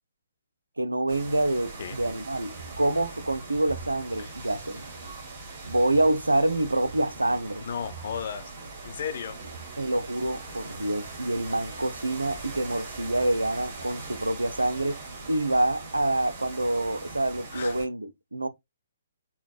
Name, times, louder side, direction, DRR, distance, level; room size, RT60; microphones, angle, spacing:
voice 1, 0.8-4.9 5.7-7.6 9.8-15.0 15.3-18.5, right 1 dB, 80° right, 0.5 m, -27 dB
sound 1, 1.1-17.9, right 3 dB, 30° right, 2.3 m, -41 dB
voice 2, 7.6-8.5 8.8-9.4 17.5-17.7, left 7 dB, 45° left, 0.5 m, -34 dB
5.1 x 2.8 x 2.4 m
figure-of-eight pair, 130°, 0 cm